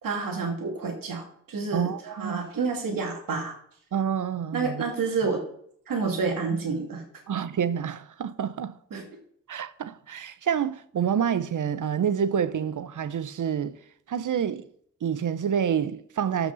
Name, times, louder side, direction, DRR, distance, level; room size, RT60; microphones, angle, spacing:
voice 1, 0.0-3.5 4.5-5.4 5.9-7.0 8.9-9.1, right 4 dB, 80° right, 2.6 m, -29 dB
voice 2, 1.7-2.4 3.9-4.8 7.3-8.7 9.5-13.7 14.1-14.6 15.0-16.5, right 8 dB, 65° right, 0.8 m, -28 dB
13.5 x 6.0 x 4.0 m
supercardioid pair, 45°, 33 cm